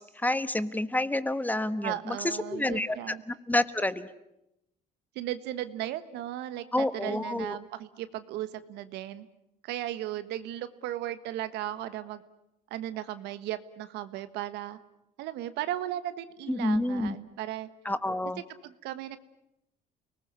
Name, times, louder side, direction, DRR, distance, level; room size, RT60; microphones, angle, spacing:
voice 1, 0.0-3.0 3.3-4.1 6.7-7.6 16.5-17.2 17.8-18.4, left 1 dB, 10° left, 13 dB, 1.2 m, -29 dB
voice 2, 1.8-3.2 5.1-9.3 9.6-12.2 12.7-14.8 15.2-17.7 18.6-19.2, right 13 dB, 90° right, 12 dB, 1.5 m, -36 dB
29.5 x 19.5 x 9.6 m, 0.85 s
cardioid pair, 110°, 17 cm